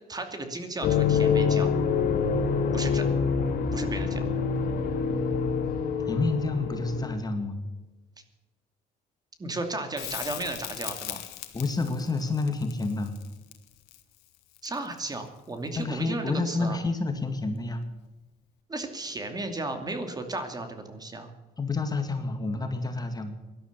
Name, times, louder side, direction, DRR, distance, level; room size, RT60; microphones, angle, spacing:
voice 1, 0.1-1.7 2.7-3.1 3.7-4.2 9.4-11.2 14.6-16.8 18.7-21.3, right 2 dB, 25° right, 6 dB, 2.6 m, -34 dB
sound 1, 0.8-7.1, left 6 dB, 60° left, 2.7 m, -26 dB
voice 2, 6.1-7.6 11.5-13.2 15.8-17.9 21.6-23.3, left 3 dB, 20° left, 6 dB, 2.0 m, -29 dB
Crackle, 10.0-15.1 17.8-17.9, left 15 dB, 90° left, 1.7 m, -40 dB
17.5 x 12.0 x 6.8 m, 1.2 s
cardioid pair, 110°, 17 cm